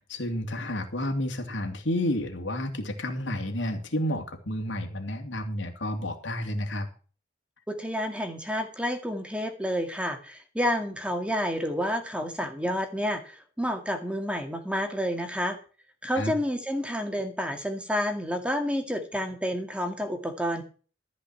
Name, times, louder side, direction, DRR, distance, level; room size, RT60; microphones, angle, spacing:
voice 1, 0.0-6.9 16.1-16.3, left 1 dB, 80° left, 4 dB, 2.7 m, -31 dB
voice 2, 7.7-15.6 16.0-20.6, equal, 5° right, 5 dB, 2.1 m, -29 dB
14.0 x 5.4 x 7.9 m, 0.38 s
head